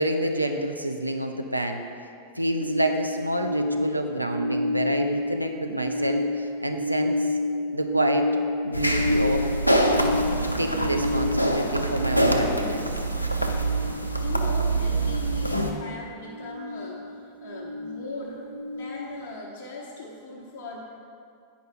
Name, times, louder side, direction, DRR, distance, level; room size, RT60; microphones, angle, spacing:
voice 1, 0.0-1.8 2.4-7.4 7.7-8.3 8.6-9.5 10.4-12.9, right 1 dB, 85° right, 4 dB, 0.5 m, -28 dB
sound 1, 2.6-19.4, left 1 dB, 25° right, 0.9 m, -30 dB
sound 2, 8.7-15.7, right 1 dB, 85° left, 0.5 m, -25 dB
voice 2, 14.2-20.8, left 2 dB, 55° left, -5 dB, 1.0 m, -39 dB
9.2 x 5.3 x 4.5 m, 2.4 s
figure-of-eight pair, 90°, 0 cm